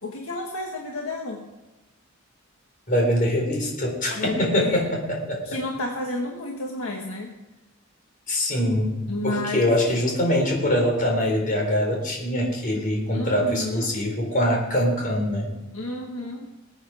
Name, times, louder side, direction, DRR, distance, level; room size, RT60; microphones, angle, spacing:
voice 1, 0.0-1.4 4.2-4.8 5.4-7.3 9.1-9.7 13.1-13.9 15.7-16.5, left 2 dB, 70° left, 1 dB, 1.7 m, -31 dB
voice 2, 2.9-5.4 8.3-15.5, equal, 40° left, 0 dB, 4.1 m, -23 dB
21.0 x 8.5 x 5.0 m, 1.1 s
head